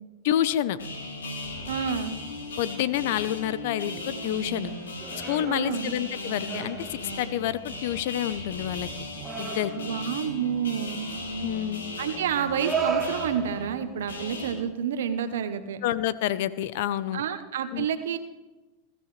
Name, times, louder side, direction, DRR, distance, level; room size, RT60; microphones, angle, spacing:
voice 1, 0.2-0.8 2.6-4.7 5.3-8.9 9.4-9.7 11.4-11.8 15.8-17.2 17.7-17.9, left 12 dB, 65° left, 15 dB, 0.7 m, -28 dB
sound 1, 0.8-14.5, left 1 dB, 90° left, 3.7 m, -37 dB
voice 2, 1.7-2.2 5.5-5.9 9.8-11.1 12.0-15.8 17.1-18.2, right 8 dB, 80° right, 9 dB, 1.0 m, -29 dB
sound 2, 2.9-3.5 3.8-6.2 6.4-7.2 7.6-8.0 9.2-10.2 11.4-11.5 12.4-13.9 15.2-15.3, right 5 dB, 20° right, 2.3 m, -35 dB
21.5 x 13.5 x 3.3 m, 1.1 s
hypercardioid pair, 105°, 0 cm